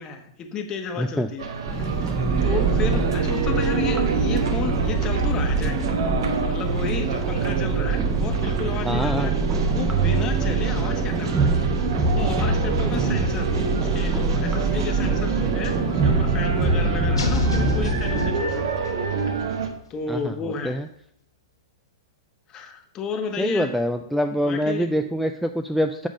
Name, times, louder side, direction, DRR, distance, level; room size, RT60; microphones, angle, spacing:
voice 1, 0.0-1.4 1.7-5.8 6.4-9.3 9.6-11.7 12.0-18.7 19.9-20.8 22.5-23.7 24.4-24.9, left 5 dB, 25° left, 5 dB, 1.0 m, -32 dB
voice 2, 1.0-1.3 8.8-9.3 20.1-20.3 20.6-20.9 23.4-26.1, equal, ahead, 7 dB, 0.3 m, -25 dB
sound 1, 1.4-19.7, right 5 dB, 70° right, 1.0 m, -28 dB
sound 2, 1.7-18.3, right 3 dB, 20° right, 0.9 m, -24 dB
sound 3, 17.2-19.1, left 4 dB, 90° left, 1.2 m, -28 dB
7.3 x 3.6 x 5.1 m, 0.72 s
hypercardioid pair, 125°, 2 cm